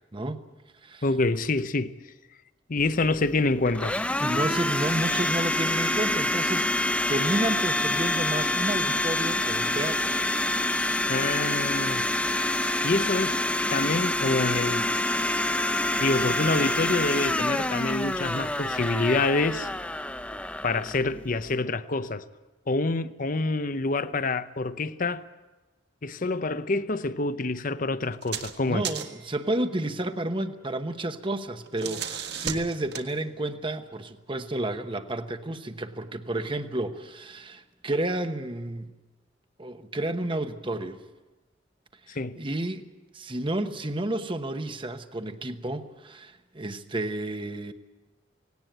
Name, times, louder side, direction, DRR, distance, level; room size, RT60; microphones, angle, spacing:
voice 1, 1.0-1.9 2.7-4.0 11.1-12.0 12.8-13.4 13.7-14.9 16.0-19.7 20.6-22.2 22.7-25.2 26.0-28.9 42.1-42.4, left 3 dB, 45° left, 0.7 m, -27 dB
Domestic sounds home sounds, 2.8-21.6, left 1 dB, 5° left, 0.7 m, -27 dB
voice 2, 4.2-10.1 28.7-38.9 39.6-41.0 42.1-42.8 43.1-47.7, right 1 dB, 25° right, 1.1 m, -31 dB
sound 1, 28.1-28.6 28.8-29.3 31.5-33.1, right 8 dB, 60° right, 1.7 m, -34 dB
18.5 x 18.0 x 9.1 m
head